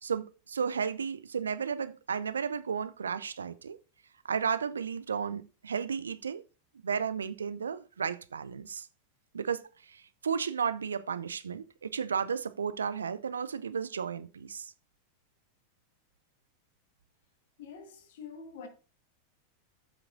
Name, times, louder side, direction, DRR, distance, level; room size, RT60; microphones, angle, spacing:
voice 1, 0.0-3.8 4.2-6.4 6.8-8.9 9.3-14.7, right 6 dB, 75° right, 0.4 m, -33 dB
voice 2, 17.6-18.7, left 6 dB, 60° left, 1.5 m, -46 dB
14.0 x 5.9 x 2.6 m
figure-of-eight pair, 90°, 0 cm